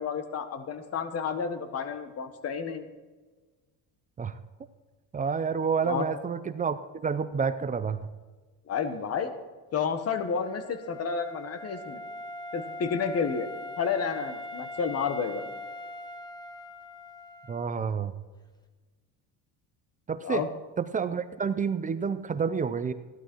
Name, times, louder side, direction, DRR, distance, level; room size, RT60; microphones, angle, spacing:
voice 1, 0.0-2.9 5.8-6.1 8.7-9.3 9.7-12.0 12.5-13.5 13.8-15.4 20.2-20.5, left 6 dB, 40° left, 9 dB, 1.5 m, -30 dB
voice 2, 5.1-8.1 17.5-18.1 20.1-20.5 20.8-22.9, right 6 dB, 20° right, 11 dB, 0.5 m, -29 dB
Wind instrument woodwind instrument, 10.0-17.8, left 2 dB, 10° left, 1.2 m, -42 dB
15.5 x 11.5 x 4.6 m, 1.3 s
cardioid pair, 140°, 38 cm